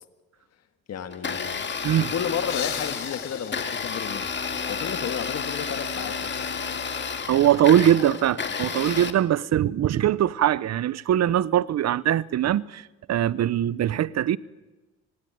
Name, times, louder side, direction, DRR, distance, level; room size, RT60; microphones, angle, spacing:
voice 1, 0.9-1.7 2.0-4.3 4.7-6.8 8.5-8.7, left 8 dB, 55° left, 1.7 m, -33 dB
Domestic sounds home sounds, 1.1-9.1, left 5 dB, 35° left, 2.1 m, -31 dB
sound 1, 2.5-5.2, left 11 dB, 75° left, 1.9 m, -39 dB
voice 2, 7.3-12.8 13.1-14.4, right 11 dB, 60° right, 0.8 m, -21 dB
25.5 x 17.5 x 9.4 m
cardioid pair, 90°, 30 cm